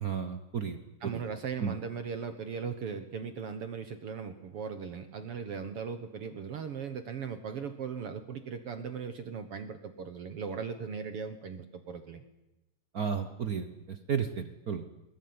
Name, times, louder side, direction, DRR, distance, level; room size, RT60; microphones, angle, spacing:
voice 1, 0.0-1.2 1.6-1.7 12.9-14.9, right 6 dB, 80° right, 9 dB, 0.8 m, -33 dB
voice 2, 1.0-12.2, right 6 dB, 55° right, 9 dB, 2.0 m, -38 dB
21.5 x 21.0 x 9.6 m, 0.97 s
omnidirectional pair, 3.4 m